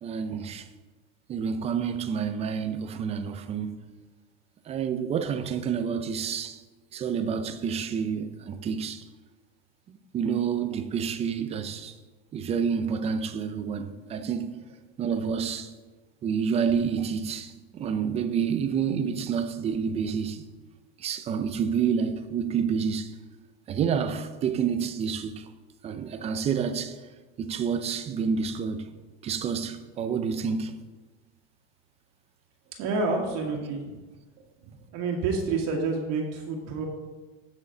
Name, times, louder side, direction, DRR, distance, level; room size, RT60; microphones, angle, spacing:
voice 1, 0.0-0.6 1.3-3.8 4.7-6.6 6.9-9.0 10.1-11.9 12.3-14.5 15.0-15.7 16.2-20.4 21.0-23.1 23.7-25.5 25.8-26.9 27.4-28.9 29.2-30.8, right 6 dB, 20° right, 0.4 m, -28 dB
voice 2, 32.8-34.0 34.7-36.9, right 3 dB, 45° right, 1.8 m, -29 dB
16.0 x 6.3 x 3.8 m
supercardioid pair, 150°, 35 cm